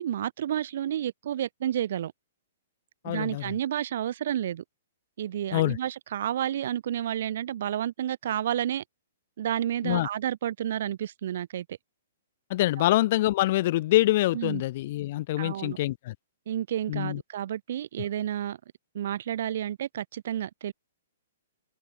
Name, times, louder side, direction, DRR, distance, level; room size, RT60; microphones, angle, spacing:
voice 1, 0.0-2.1 3.0-4.6 5.2-8.8 9.4-11.8 14.3-14.6 15.4-15.8 16.5-18.6 18.9-20.7, right 11 dB, 60° right, 0.9 m, -30 dB
voice 2, 3.0-3.6 5.5-5.8 9.8-10.1 12.5-16.1 16.9-17.2, left 16 dB, 50° left, 0.5 m, -25 dB
hypercardioid pair, 125°, 0 cm